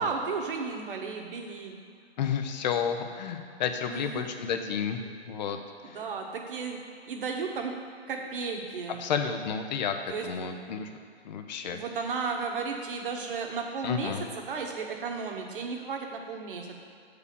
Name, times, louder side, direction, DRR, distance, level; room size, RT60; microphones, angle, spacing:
voice 1, 0.0-1.7 3.9-4.3 5.8-6.8 7.1-7.7 8.1-9.0 10.1-10.5 11.7-16.7, right 4 dB, 55° right, 2 dB, 1.5 m, -34 dB
voice 2, 2.2-5.0 5.3-5.6 9.0-10.0 10.2-10.9 11.2-11.8 13.8-14.2, left 7 dB, 40° left, 6 dB, 0.8 m, -31 dB
8.1 x 4.9 x 6.9 m, 2.3 s
figure-of-eight pair, 130°, 33 cm